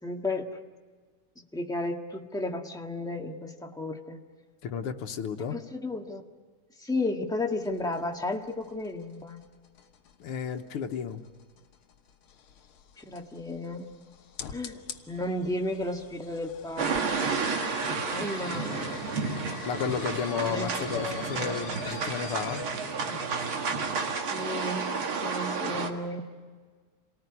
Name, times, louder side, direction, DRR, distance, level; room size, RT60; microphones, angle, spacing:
voice 1, 0.0-0.5 1.3-4.2 5.5-6.2 6.8-9.4 13.0-14.0 14.5-17.2 18.0-19.0 20.3-21.8 24.1-26.3, left 2 dB, ahead, 2 dB, 1.3 m, -34 dB
voice 2, 4.6-5.6 10.2-11.2 19.7-22.6, left 7 dB, 90° left, 5 dB, 2.0 m, -32 dB
sound 1, 7.6-22.6, left 7 dB, 75° left, 2.0 m, -45 dB
sound 2, 16.8-25.9, right 5 dB, 70° right, 2.6 m, -32 dB
sound 3, 18.6-23.7, right 3 dB, 45° right, 2.1 m, -40 dB
28.0 x 19.0 x 9.8 m, 1.5 s
omnidirectional pair, 2.4 m